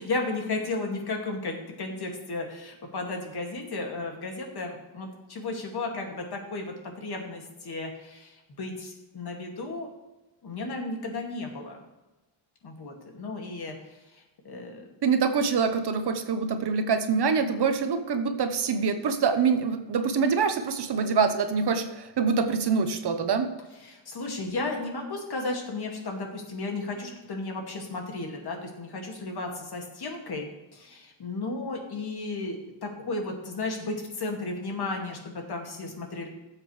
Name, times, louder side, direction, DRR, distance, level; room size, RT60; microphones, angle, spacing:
voice 1, 0.0-9.9 10.4-11.8 12.6-13.8 14.4-14.8 23.8-36.3, left 3 dB, 50° left, 2 dB, 2.3 m, -34 dB
voice 2, 15.0-23.5, right 5 dB, 55° right, 8 dB, 1.0 m, -25 dB
17.5 x 7.6 x 3.3 m, 1.1 s
wide cardioid pair, 160°, 49 cm